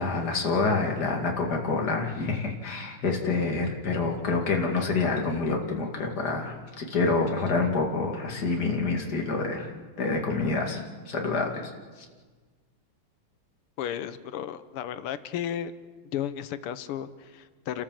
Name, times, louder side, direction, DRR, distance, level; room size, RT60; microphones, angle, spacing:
voice 1, 0.0-9.7 10.0-10.8 11.1-11.7, left 3 dB, 45° left, 1 dB, 2.9 m, -27 dB
voice 2, 13.8-15.7 16.1-17.8, left 10 dB, 85° left, 13 dB, 1.8 m, -34 dB
29.5 x 13.5 x 7.5 m, 1.4 s
omnidirectional pair, 2.4 m